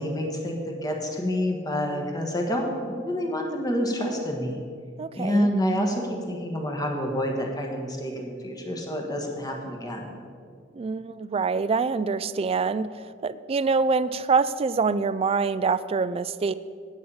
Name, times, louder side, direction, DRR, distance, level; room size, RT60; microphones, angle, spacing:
voice 1, 0.0-4.6 5.2-10.1, equal, 20° left, 1 dB, 1.4 m, -28 dB
voice 2, 5.0-5.5 10.7-12.9 13.2-16.5, right 4 dB, 30° right, 15 dB, 0.3 m, -25 dB
9.6 x 8.5 x 5.5 m, 2.2 s
head